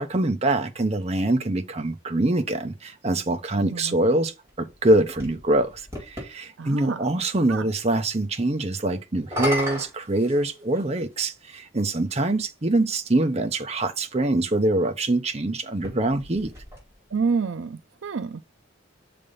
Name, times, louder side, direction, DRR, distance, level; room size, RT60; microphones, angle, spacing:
voice 1, 0.0-16.5, right 2 dB, 30° right, 0.7 m, -24 dB
voice 2, 3.6-4.0 6.6-7.1 7.5-7.7 17.1-18.4, right 5 dB, 70° right, 0.5 m, -28 dB
sound 1, 4.5-6.3 9.1-10.9 11.9-12.0 15.7-17.2, equal, 15° right, 4.1 m, -34 dB
6.7 x 3.4 x 5.3 m
head